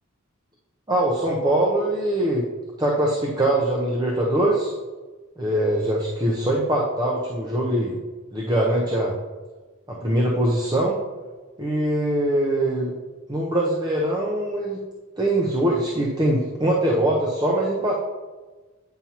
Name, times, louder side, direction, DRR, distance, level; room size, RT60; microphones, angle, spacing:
voice 1, 0.9-2.4 2.8-4.7 5.4-8.0 8.3-9.1 9.9-11.0 11.6-12.9 13.3-14.8 15.2-18.0, right 1 dB, 20° right, -2 dB, 0.7 m, -22 dB
8.7 x 5.6 x 2.9 m, 1.3 s
head